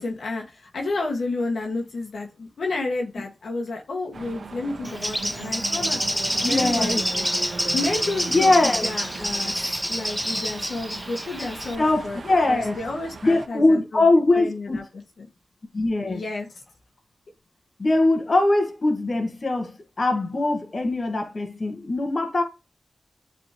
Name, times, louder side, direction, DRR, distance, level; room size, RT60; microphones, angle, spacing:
voice 1, 0.0-9.6 9.9-12.2 12.5-14.1 14.3-14.8 15.2-15.3 16.0-16.5, left 2 dB, 90° left, 1.8 m, -31 dB
sound 1, 4.1-13.5, right 3 dB, 80° right, 0.9 m, -37 dB
Bird, 4.8-11.8, equal, ahead, 0.4 m, -27 dB
voice 2, 6.4-7.0 8.3-8.9 11.8-12.8 13.2-14.8 15.7-16.2 17.8-22.4, left 2 dB, 55° left, 1.7 m, -21 dB
8.8 x 4.2 x 3.0 m
cardioid pair, 55°, 0 cm